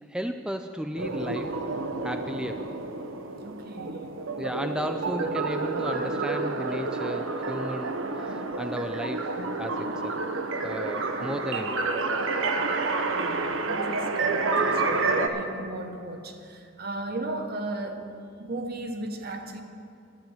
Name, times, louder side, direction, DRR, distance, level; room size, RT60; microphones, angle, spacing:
voice 1, 0.1-1.6 2.0-2.7 4.4-10.2 10.6-11.9, equal, 5° right, 6 dB, 0.3 m, -34 dB
sound 1, 1.0-15.3, right 3 dB, 80° right, 0.9 m, -29 dB
voice 2, 3.4-4.1 13.1-18.1 18.4-19.6, right 2 dB, 55° right, 5 dB, 1.1 m, -36 dB
11.5 x 9.1 x 7.2 m, 2.5 s
head